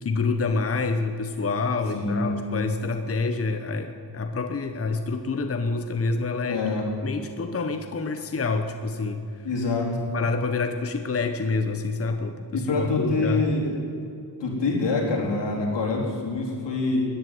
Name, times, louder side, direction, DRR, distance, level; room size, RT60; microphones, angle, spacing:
voice 1, 0.0-6.7 7.0-9.3 10.1-13.4, left 4 dB, 35° left, 7 dB, 0.9 m, -27 dB
voice 2, 1.9-2.4 6.5-6.9 9.4-10.1 12.5-13.8 14.4-17.1, left 3 dB, 85° left, -2 dB, 3.9 m, -25 dB
14.0 x 10.5 x 9.5 m, 2.6 s
wide cardioid pair, 95°, 42 cm